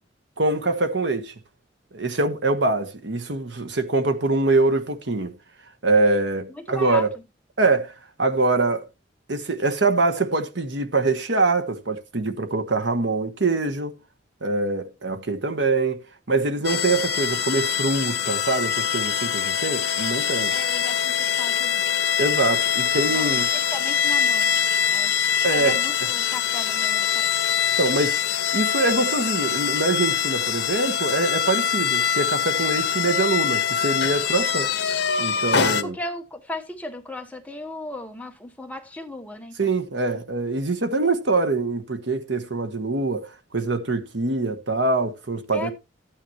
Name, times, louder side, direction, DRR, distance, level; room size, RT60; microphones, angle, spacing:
voice 1, 0.4-1.3 1.9-5.4 5.8-7.1 7.6-8.8 9.3-14.0 14.4-16.0 16.3-20.5 22.2-23.5 25.4-26.1 27.8-28.2 28.5-34.7 35.2-36.0 39.6-45.7, right 3 dB, 70° right, 1.3 m, -24 dB
voice 2, 6.5-7.1 20.5-21.9 23.1-24.5 24.9-25.1 25.5-27.3 35.6-39.7 45.5-45.7, left 1 dB, 10° left, 1.2 m, -36 dB
sound 1, 16.6-35.8, left 8 dB, 65° left, 1.1 m, -23 dB
13.0 x 9.1 x 3.1 m
head